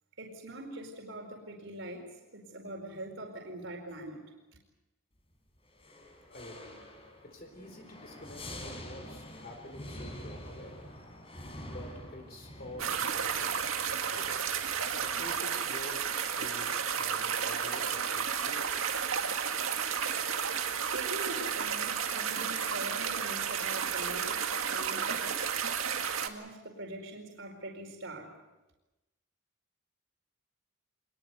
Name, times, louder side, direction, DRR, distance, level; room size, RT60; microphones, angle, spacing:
voice 1, 0.2-4.3 20.9-25.5 26.2-28.4, right 1 dB, 60° right, 2 dB, 4.6 m, -43 dB
sound 1, 5.7-15.4, left 1 dB, 25° left, 4.1 m, -47 dB
voice 2, 6.3-6.8 7.2-10.8 11.7-13.6 14.1-14.6 15.0-16.1 16.3-18.8, left 1 dB, 45° left, 4 dB, 4.2 m, -48 dB
sound 2, 12.8-26.3, right 7 dB, 80° right, 2.0 m, -32 dB
25.5 x 20.5 x 8.2 m, 1.0 s
head